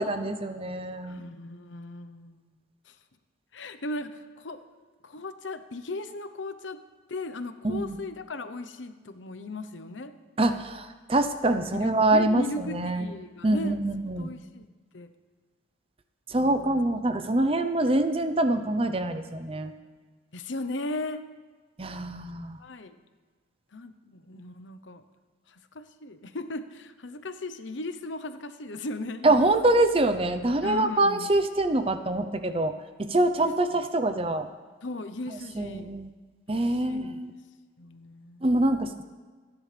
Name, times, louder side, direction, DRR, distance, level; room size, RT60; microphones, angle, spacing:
voice 1, 0.0-1.2 7.6-8.0 10.4-13.1 13.4-14.3 16.3-19.7 21.8-22.6 29.2-32.7 33.1-34.5 35.5-36.1 36.5-37.3 38.4-39.0, right 2 dB, 30° right, 9 dB, 0.7 m, -25 dB
voice 2, 1.0-2.5 2.9-3.0 3.5-4.6 5.0-6.8 7.1-10.1 11.7-13.8 14.2-14.7 14.9-15.1 16.4-16.9 20.3-21.2 22.6-23.0 23.7-25.0 25.5-29.8 30.6-31.3 33.4-33.9 34.8-35.9 36.5-37.4 37.8-38.5, left 2 dB, 80° left, 10 dB, 0.9 m, -37 dB
27.5 x 10.5 x 3.4 m, 1.5 s
head